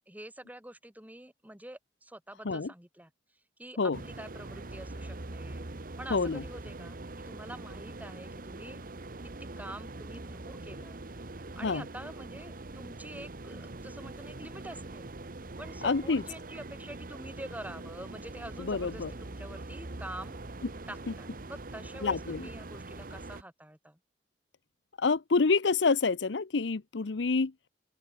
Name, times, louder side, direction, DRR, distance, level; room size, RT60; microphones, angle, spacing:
voice 1, 0.0-3.1 3.6-5.7 6.0-8.8 9.4-11.0 11.6-15.1 15.6-20.4 20.9-24.0, right 1 dB, 10° right, 3.4 m, -46 dB
sound 1, 3.9-23.4, right 2 dB, 50° right, 1.3 m, -43 dB
voice 2, 6.1-6.4 11.6-11.8 15.8-16.2 18.6-19.1 21.1-21.2 22.0-22.5 25.0-27.5, left 4 dB, 75° left, 0.7 m, -27 dB
open air
head